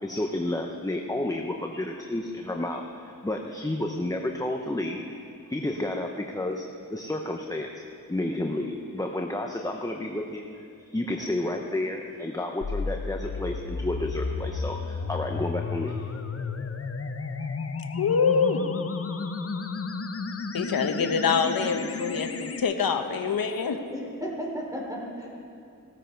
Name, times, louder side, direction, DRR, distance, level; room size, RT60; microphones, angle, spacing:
voice 1, 0.0-5.1 5.5-6.6 6.9-7.8 8.1-16.1, left 1 dB, 10° left, 2 dB, 0.8 m, -31 dB
sound 1, 12.6-22.6, left 4 dB, 40° left, 0.8 m, -33 dB
voice 2, 18.0-18.6 20.5-23.8, left 6 dB, 90° left, 6 dB, 0.9 m, -25 dB
voice 3, 23.9-25.3, equal, 10° right, -2 dB, 3.5 m, -34 dB
16.5 x 14.0 x 4.5 m, 2.5 s
wide cardioid pair, 95°, 34 cm